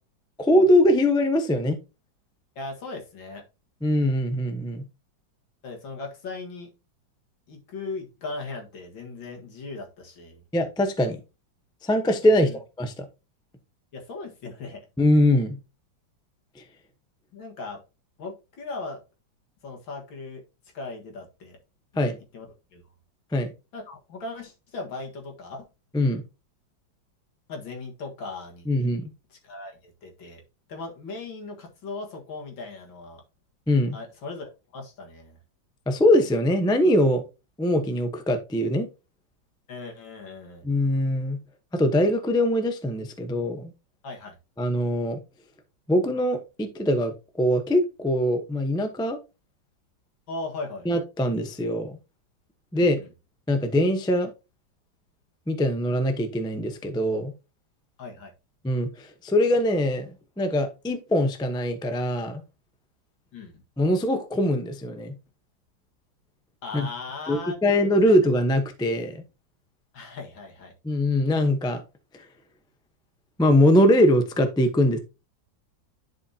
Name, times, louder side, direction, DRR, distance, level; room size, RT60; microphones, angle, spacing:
voice 1, 0.4-1.8 3.8-4.8 10.5-11.2 11.8-13.0 15.0-15.6 16.6-16.7 22.0-22.2 23.3-23.5 25.9-26.2 28.7-29.1 33.7-33.9 35.9-37.2 37.6-38.9 40.6-41.4 41.7-43.7 44.6-45.2 45.9-49.2 50.8-52.0 52.7-53.0 53.5-54.3 55.5-57.3 58.6-60.1 60.4-62.4 63.8-65.1 66.7-66.9 67.3-69.2 70.8-71.8 72.1-72.2 73.4-75.0, left 1 dB, 5° left, 0.4 m, -22 dB
voice 2, 2.6-3.4 5.6-6.7 7.5-10.4 12.3-12.6 13.9-14.9 17.3-17.8 18.2-19.0 19.6-20.4 20.7-21.6 21.9-22.5 22.7-22.8 23.7-25.7 27.5-28.9 29.4-30.4 30.7-33.2 33.9-35.4 39.7-40.7 44.0-44.4 50.3-50.9 52.7-53.1 58.0-58.3 63.3-63.6 66.6-67.8 68.1-68.2 69.9-70.7, left 3 dB, 80° left, 2.5 m, -38 dB
10.5 x 5.0 x 2.8 m
omnidirectional pair, 2.1 m